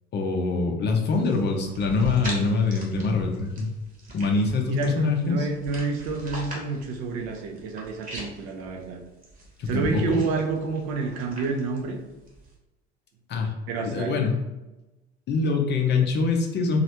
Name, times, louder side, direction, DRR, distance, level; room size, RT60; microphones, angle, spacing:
voice 1, 0.1-3.7 4.1-5.5 9.6-10.2 13.3-13.5 13.8-14.4 15.3-16.8, left 4 dB, 30° left, 2 dB, 0.5 m, -24 dB
sound 1, 1.0-12.5, right 1 dB, 25° right, 1.1 m, -42 dB
voice 2, 4.6-9.0 9.7-12.0 13.7-14.2, right 4 dB, 50° right, 3 dB, 0.6 m, -29 dB
3.0 x 2.4 x 2.8 m, 1.1 s
figure-of-eight pair, 70°, 33 cm